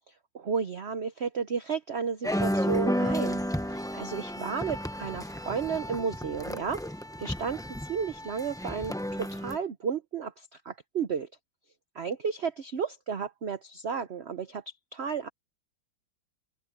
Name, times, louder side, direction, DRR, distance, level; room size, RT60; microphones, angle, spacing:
voice 1, 0.3-3.4 3.7-6.8 7.2-11.3 11.9-14.6 14.9-15.3, right 6 dB, 55° right, 0.7 m, -33 dB
sound 1, 2.2-9.6, equal, 5° left, 0.5 m, -32 dB
open air
omnidirectional pair, 2.2 m